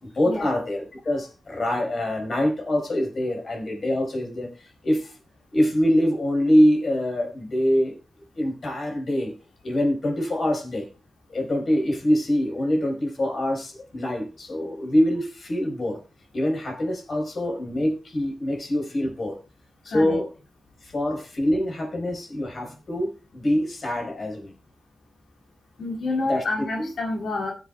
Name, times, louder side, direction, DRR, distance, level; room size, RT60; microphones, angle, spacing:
voice 1, 0.0-5.2 5.5-8.0 8.4-9.3 9.6-10.8 11.3-16.0 16.3-19.4 19.8-20.3 20.8-24.5 26.3-26.4 26.8-26.9, left 1 dB, 50° left, 2 dB, 4.5 m, -24 dB
voice 2, 25.8-27.5, left 2 dB, 90° left, -2 dB, 2.4 m, -28 dB
20.5 x 8.0 x 2.3 m, 0.33 s
wide cardioid pair, 130°, 0 cm